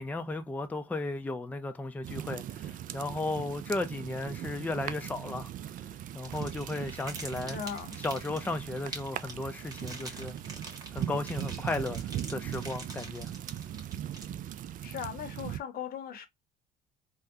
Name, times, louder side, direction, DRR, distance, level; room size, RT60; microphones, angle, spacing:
voice 1, 0.0-5.7 6.1-7.6 8.0-10.3 10.9-12.0 12.3-13.3, left 2 dB, 10° left, 0.5 m, -35 dB
sound 1, 2.0-15.6, right 11 dB, 55° right, 0.4 m, -39 dB
sound 2, 6.2-14.7, right 2 dB, 20° right, 1.5 m, -46 dB
voice 2, 7.5-8.0 14.8-16.3, left 8 dB, 60° left, 0.9 m, -38 dB
3.6 x 2.2 x 2.7 m
cardioid pair, 110°, 17 cm